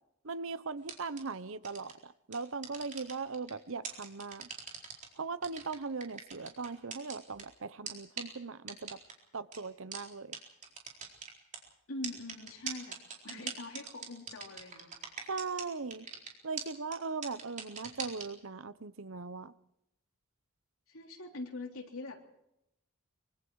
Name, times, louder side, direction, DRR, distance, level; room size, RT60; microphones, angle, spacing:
voice 1, 0.2-4.5 5.2-9.0 9.3-10.4 13.3-13.5 15.2-16.1 16.4-19.5, right 4 dB, 65° right, 15 dB, 0.9 m, -39 dB
sound 1, 0.8-1.2 1.6-1.9 2.3-3.5 3.8-5.0 5.4-7.4 7.9-8.0 8.2-8.3 8.7-9.1 9.5-9.6 9.9-10.0 10.3-10.4 10.6-11.6 12.0-15.6 15.9-16.3 16.6-16.7 16.9-17.0 17.2-18.2, right 6 dB, 35° right, 4.2 m, -40 dB
voice 2, 11.9-13.0 13.2-15.3 20.9-22.2, left 2 dB, 70° left, 2 dB, 3.5 m, -43 dB
24.5 x 24.0 x 4.8 m, 0.82 s
head